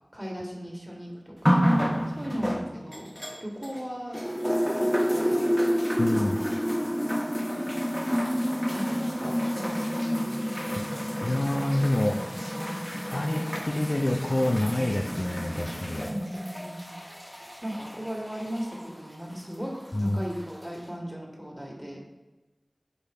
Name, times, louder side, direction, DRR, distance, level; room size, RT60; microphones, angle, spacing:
voice 1, 0.1-1.7 2.1-3.1 3.4-4.5 4.8-5.4 6.1-6.2 8.7-10.3 16.1-17.0 17.6-22.0, equal, 15° right, -1 dB, 1.6 m, -37 dB
sound 1, 1.5-3.8 4.1-18.9 19.8-19.9, equal, 5° left, 0.7 m, -29 dB
voice 2, 6.0-6.4 11.2-12.2 13.1-16.1 19.9-20.2, left 1 dB, 50° left, 2 dB, 0.5 m, -27 dB
4.7 x 4.0 x 5.2 m, 1.1 s
wide cardioid pair, 40°, 0 cm